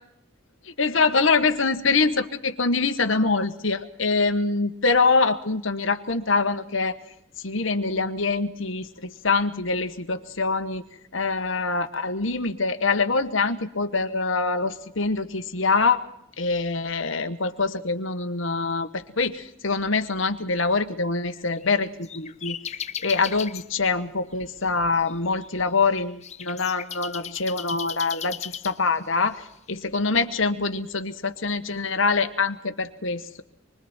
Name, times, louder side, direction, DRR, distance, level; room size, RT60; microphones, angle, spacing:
voice 1, 0.7-7.0 7.4-10.8 11.1-16.0 16.4-33.4, left 4 dB, 65° left, 8 dB, 1.5 m, -24 dB
sound 1, 21.3-23.7 24.3-29.2, left 8 dB, 30° left, 0.8 m, -37 dB
26.5 x 24.5 x 4.5 m, 0.75 s
head